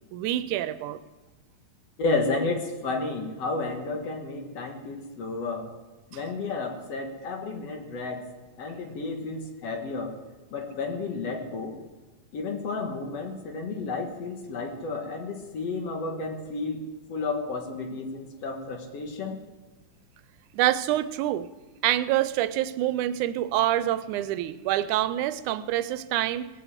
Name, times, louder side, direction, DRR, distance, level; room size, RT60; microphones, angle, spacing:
voice 1, 0.1-1.0 6.1-6.2 20.5-21.5 21.8-26.5, right 13 dB, 90° right, 14 dB, 2.1 m, -26 dB
voice 2, 2.0-5.7 6.1-8.3 8.6-10.2 10.5-11.8 12.3-16.8 17.1-19.4, left 3 dB, 60° left, 4 dB, 2.5 m, -31 dB
19.0 x 8.4 x 7.3 m, 1.2 s
omnidirectional pair, 3.4 m